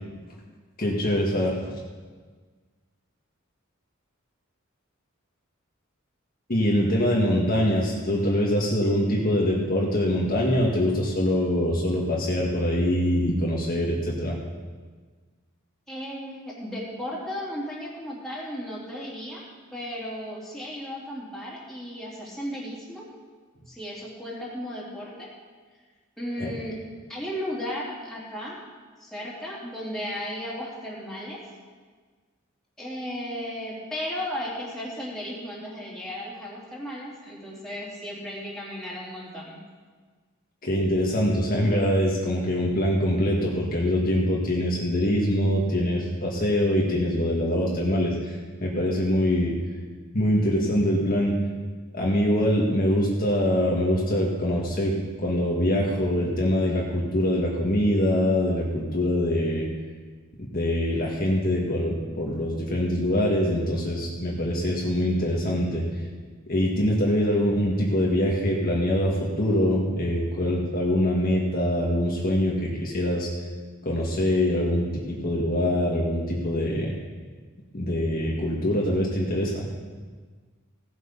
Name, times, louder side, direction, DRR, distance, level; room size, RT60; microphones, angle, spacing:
voice 1, 0.8-1.6 6.5-14.4 26.4-26.5 40.6-49.6 50.1-51.4 51.9-59.7 60.5-65.8 66.5-73.3 73.8-76.9 77.7-79.7, equal, 45° left, -3 dB, 1.7 m, -24 dB
voice 2, 15.9-19.4 19.7-23.1 23.7-25.3 26.2-26.8 27.1-28.6 29.0-31.4 32.8-39.6, equal, ahead, -6 dB, 3.4 m, -35 dB
17.0 x 8.1 x 5.4 m, 1.5 s
head